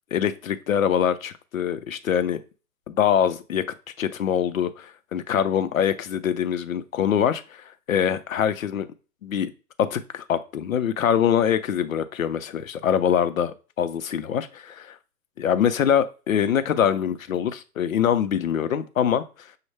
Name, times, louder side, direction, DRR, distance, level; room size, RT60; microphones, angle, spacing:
voice 1, 0.1-2.4 2.9-3.6 4.0-8.9 9.2-9.5 9.8-15.0 15.4-19.2, left 9 dB, 60° left, 11 dB, 0.5 m, -24 dB
6.3 x 2.1 x 3.3 m, 0.34 s
hypercardioid pair, 165°, 48 cm